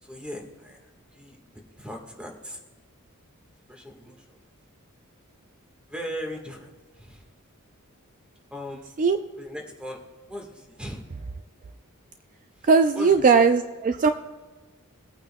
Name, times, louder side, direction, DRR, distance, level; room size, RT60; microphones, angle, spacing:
voice 1, 0.0-0.8 1.1-1.4 1.8-2.6 3.7-4.5 5.9-7.2 8.5-8.9 9.4-10.0 10.3-11.1 12.6-12.7 12.9-13.3, equal, 5° right, 1 dB, 1.4 m, -38 dB
voice 2, 12.6-14.1, right 5 dB, 35° right, 8 dB, 0.4 m, -19 dB
23.0 x 8.9 x 2.2 m, 1.3 s
head